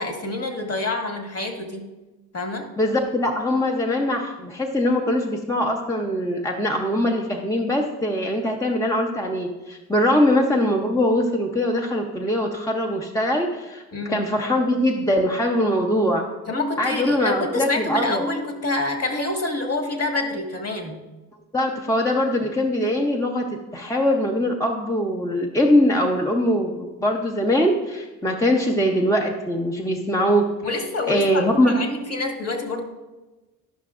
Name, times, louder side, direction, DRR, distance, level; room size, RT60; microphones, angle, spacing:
voice 1, 0.0-1.9 2.3-2.7 13.9-14.2 16.5-21.0 30.6-32.8, left 2 dB, 35° left, 3 dB, 1.5 m, -27 dB
voice 2, 2.8-13.8 14.1-16.2 16.8-18.2 21.5-30.4 31.1-31.7, left 1 dB, 10° left, 1 dB, 0.7 m, -22 dB
11.0 x 5.7 x 2.4 m, 1.1 s
supercardioid pair, 60°, 42 cm